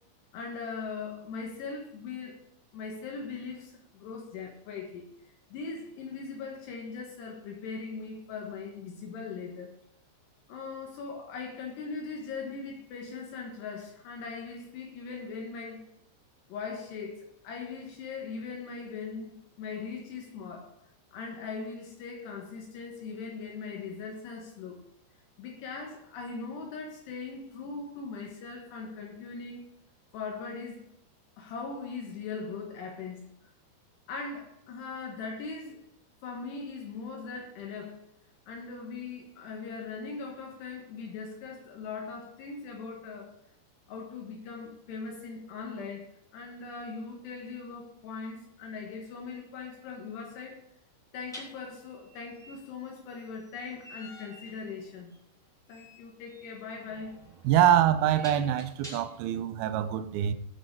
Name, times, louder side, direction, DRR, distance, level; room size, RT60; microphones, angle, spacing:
voice 1, 0.3-2.4 2.7-9.7 10.5-15.8 16.5-20.7 21.1-24.8 25.4-29.7 30.1-30.8 31.4-33.5 34.1-35.8 36.2-38.0 38.5-43.3 43.9-50.6 51.1-55.1 55.7-57.1, left 4 dB, 70° left, 3.3 m, -40 dB
sound 1, 48.9-49.0 51.3-59.4, left 1 dB, ahead, 2.2 m, -50 dB
voice 2, 57.4-60.3, right 11 dB, 75° right, 2.3 m, -24 dB
16.0 x 6.2 x 4.6 m
omnidirectional pair, 5.1 m